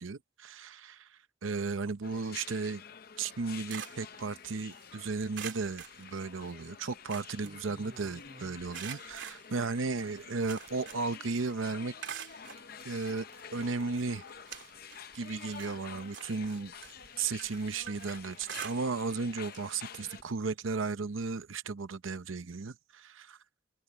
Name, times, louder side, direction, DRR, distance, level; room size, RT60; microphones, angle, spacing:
voice 1, 0.0-2.8 3.2-12.3 12.8-14.2 15.1-16.7 17.2-23.4, right 4 dB, 85° right, 0.8 m, -35 dB
sound 1, 2.0-20.2, left 7 dB, 50° left, 0.7 m, -49 dB
sound 2, 3.3-4.9 5.3-6.6 6.9-8.2 8.7-11.2 11.5-12.6 13.3-13.4 13.9-15.1 15.4-19.2 19.5-19.7 20.1-20.2 21.4-21.5, right 8 dB, 65° right, 2.9 m, -46 dB
sound 3, 5.9-6.1 7.0-8.8 9.1-19.7 20.1-20.2, right 2 dB, 35° right, 6.5 m, -60 dB
head